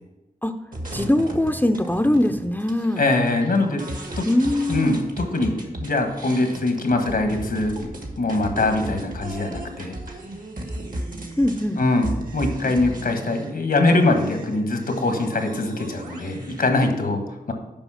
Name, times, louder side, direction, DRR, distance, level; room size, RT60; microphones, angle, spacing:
sound 1, 0.7-13.5 13.9-16.7, right 1 dB, 65° right, 1.7 m, -35 dB
voice 1, 0.9-3.0 4.3-5.0 11.4-11.8, left 1 dB, 10° left, 6 dB, 0.5 m, -21 dB
voice 2, 3.0-3.8 4.2-4.3 4.7-7.7 8.2-10.0 11.8-17.5, left 2 dB, 75° left, 5 dB, 1.3 m, -22 dB
7.1 x 5.3 x 5.6 m, 1.0 s
cardioid pair, 40°, 15 cm